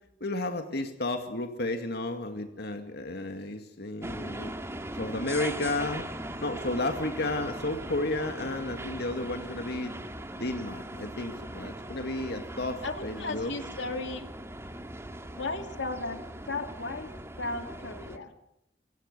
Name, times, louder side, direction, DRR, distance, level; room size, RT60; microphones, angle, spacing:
voice 1, 0.2-4.5 4.9-6.1 6.4-10.0 10.3-13.5, left 2 dB, 60° left, 5 dB, 2.1 m, -32 dB
sound 1, 4.0-18.2, right 1 dB, 15° right, 2.1 m, -40 dB
voice 2, 12.8-14.3 15.3-16.2 16.5-17.1 17.4-18.3, left 3 dB, 75° left, 6 dB, 2.5 m, -35 dB
27.0 x 24.0 x 6.8 m, 0.83 s
head